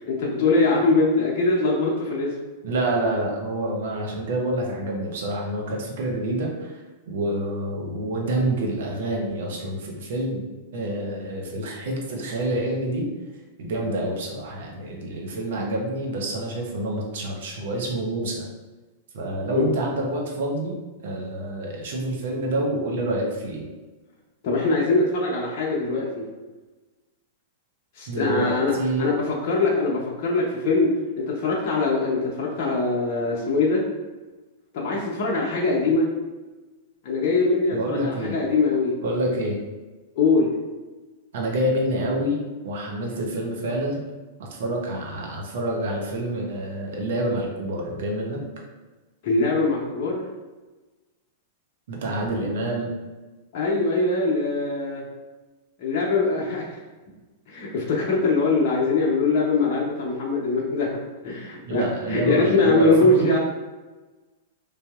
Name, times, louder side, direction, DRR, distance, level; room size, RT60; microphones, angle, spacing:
voice 1, 0.1-2.3 19.6-19.7 24.4-26.3 28.0-28.7 29.0-33.8 34.7-36.1 37.0-38.9 40.1-40.5 49.2-50.2 53.5-55.0 55.8-56.7 57.5-61.8 62.1-63.4, left 3 dB, 50° left, -4 dB, 0.7 m, -22 dB
voice 2, 2.6-6.8 7.1-10.4 10.7-13.0 13.6-18.5 19.1-20.8 21.0-23.6 28.1-29.1 37.7-38.4 39.0-39.6 41.3-44.0 44.4-48.4 51.9-52.9 61.7-63.3, right 1 dB, 65° right, -1 dB, 0.7 m, -27 dB
3.3 x 2.7 x 2.3 m, 1.2 s
hypercardioid pair, 105°, 0 cm